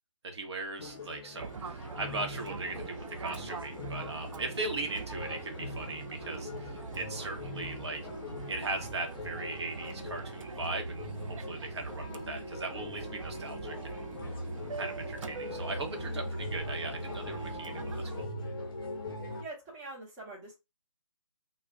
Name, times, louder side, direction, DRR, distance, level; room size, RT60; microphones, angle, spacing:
voice 1, 0.2-8.0 8.5-14.0 14.8-18.3, right 3 dB, 55° right, 0.8 m, -39 dB
sound 1, 0.8-19.4, left 2 dB, 45° left, 0.6 m, -41 dB
Fixed-wing aircraft airplane, 1.4-18.3, right 5 dB, 75° right, 0.4 m, -43 dB
voice 2, 19.4-20.5, right 2 dB, 10° right, 0.7 m, -44 dB
2.3 x 2.1 x 3.5 m
figure-of-eight pair, 155°, 17 cm